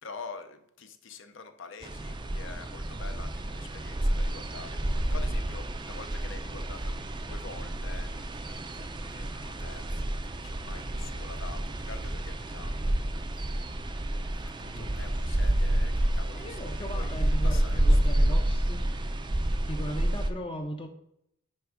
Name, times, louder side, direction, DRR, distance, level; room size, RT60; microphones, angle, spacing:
voice 1, 0.0-12.8 14.6-18.4, left 4 dB, 60° left, 9 dB, 0.7 m, -46 dB
sound 1, 1.8-20.3, right 1 dB, 20° right, 0.5 m, -29 dB
voice 2, 14.6-14.9 16.3-18.8 19.6-20.9, equal, 25° left, 4 dB, 0.6 m, -38 dB
9.8 x 3.5 x 5.0 m, 0.76 s
head